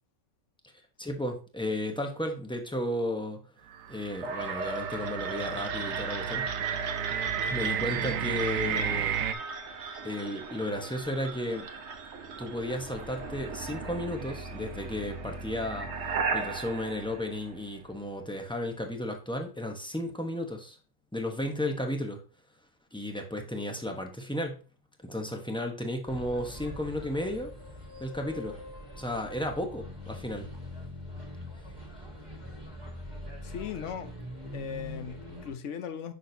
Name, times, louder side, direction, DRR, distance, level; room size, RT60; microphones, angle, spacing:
voice 1, 1.0-3.5 3.9-6.5 7.5-9.2 10.0-11.7 12.4-20.8 21.1-22.2 22.9-24.6 25.0-27.5 28.0-28.6 29.0-30.5, left 1 dB, 5° left, 0.7 m, -34 dB
sound 1, 3.7-9.3, right 8 dB, 85° right, 1.0 m, -32 dB
sound 2, 4.2-18.1, right 4 dB, 60° right, 1.1 m, -38 dB
sound 3, 26.1-35.5, left 1 dB, 35° right, 2.0 m, -43 dB
voice 2, 33.4-34.1 34.5-36.1, left 7 dB, 70° left, 1.1 m, -38 dB
6.5 x 6.0 x 2.7 m
omnidirectional pair, 1.3 m